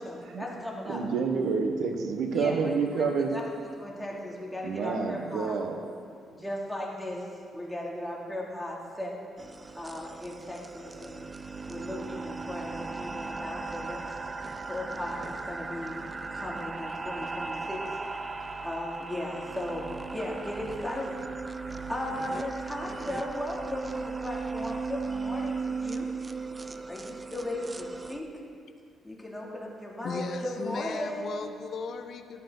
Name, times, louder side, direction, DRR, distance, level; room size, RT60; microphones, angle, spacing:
voice 1, 0.0-1.0 2.3-5.6 6.3-7.3 7.5-9.2 9.8-11.3 11.7-14.1 14.7-16.0 16.3-18.0 18.6-21.2 21.9-26.1 26.9-28.4 29.0-31.3, left 1 dB, 5° left, -4 dB, 2.7 m, -36 dB
voice 2, 0.9-3.3 4.6-5.8, right 5 dB, 75° right, 5 dB, 1.3 m, -28 dB
sound 1, 9.4-28.2, right 4 dB, 25° right, 0.5 m, -37 dB
voice 3, 30.0-32.4, left 5 dB, 60° left, 7 dB, 1.0 m, -36 dB
15.0 x 11.5 x 4.0 m, 2.4 s
cardioid pair, 90°, 0 cm